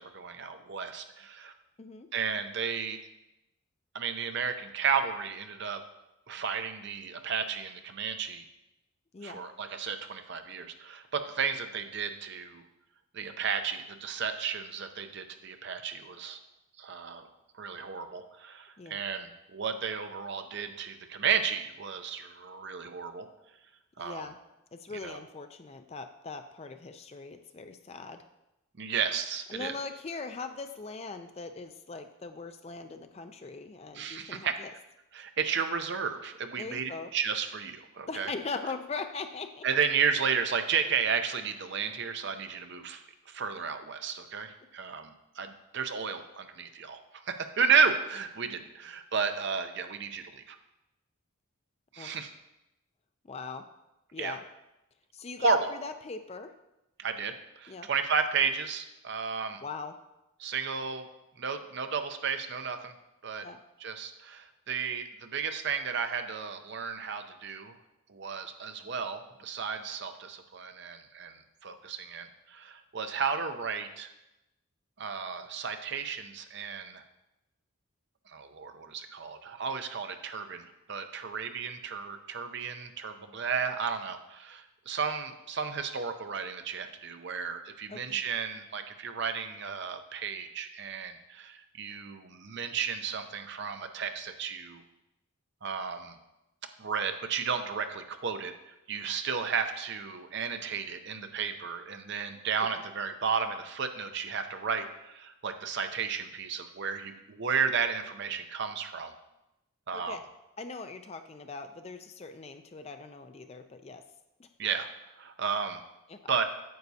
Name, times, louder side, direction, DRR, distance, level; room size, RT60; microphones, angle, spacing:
voice 1, 0.0-1.5 2.1-3.0 3.9-5.8 6.3-8.4 9.2-12.6 13.1-16.4 16.8-17.3 17.6-23.3 24.0-24.3 25.0-25.2 28.8-29.8 33.9-34.6 35.1-38.3 39.6-47.0 47.3-50.6 51.9-52.3 54.2-54.4 55.4-55.7 57.0-59.6 60.4-61.0 61.4-62.9 63.2-63.4 63.8-67.7 68.1-74.1 75.0-77.0 78.3-94.8 95.6-96.2 96.6-109.1 109.9-110.2 114.6-114.9 115.2-115.8 116.3-116.4, right 6 dB, 50° right, 8 dB, 0.6 m, -33 dB
voice 2, 9.1-9.4 18.8-19.0 24.0-24.4 24.7-28.2 29.5-34.7 36.6-37.1 38.1-39.6 48.6-48.7 52.0-52.3 53.3-53.6 54.1-54.4 55.1-56.5 57.7-57.9 59.6-60.0 63.4-63.6 87.9-88.2 102.7-102.8 109.9-110.2 110.6-114.0 114.4-114.5 116.1-116.3, left 4 dB, 30° left, 8 dB, 0.4 m, -40 dB
9.3 x 7.9 x 2.8 m, 0.93 s
head